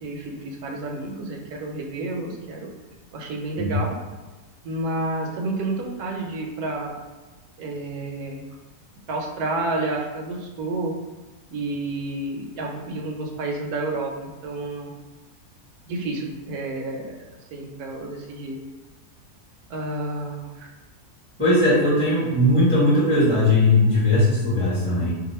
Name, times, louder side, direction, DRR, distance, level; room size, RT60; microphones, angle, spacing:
voice 1, 0.0-2.7 3.1-3.9 4.6-7.0 7.6-8.4 9.1-11.0 11.5-14.9 15.9-17.1 17.5-18.6 19.7-20.7, right 2 dB, 75° right, 1 dB, 1.1 m, -30 dB
voice 2, 21.4-25.1, left 1 dB, 5° left, -10 dB, 0.9 m, -19 dB
2.6 x 2.5 x 4.1 m, 1.2 s
omnidirectional pair, 1.7 m